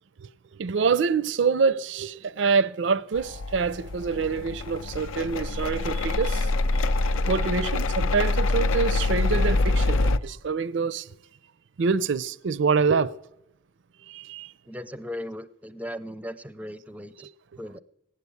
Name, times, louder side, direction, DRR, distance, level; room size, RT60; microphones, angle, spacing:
voice 1, 0.6-6.8 7.3-11.1 11.8-13.2 14.1-14.5, right 5 dB, 60° right, 0.4 m, -26 dB
sound 1, 3.2-10.2, left 2 dB, 75° left, 0.5 m, -25 dB
voice 2, 14.7-17.3 17.6-17.8, equal, 5° right, 0.4 m, -37 dB
18.0 x 8.1 x 8.4 m
head